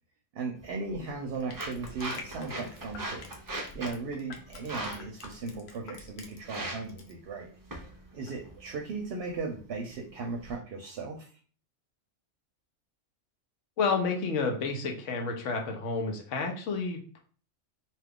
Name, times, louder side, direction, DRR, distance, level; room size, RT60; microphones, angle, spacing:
voice 1, 0.3-3.3 3.7-7.5 8.1-11.3, right 4 dB, 65° right, 1 dB, 0.7 m, -37 dB
sound 1, 0.6-10.5, right 1 dB, 35° right, 0.3 m, -42 dB
Crushing, 1.3-6.6 6.9-7.1, left 5 dB, 65° left, 0.8 m, -48 dB
voice 2, 13.8-17.2, left 4 dB, 85° left, 3 dB, 1.1 m, -30 dB
2.8 x 2.3 x 3.4 m, 0.41 s
omnidirectional pair, 1.2 m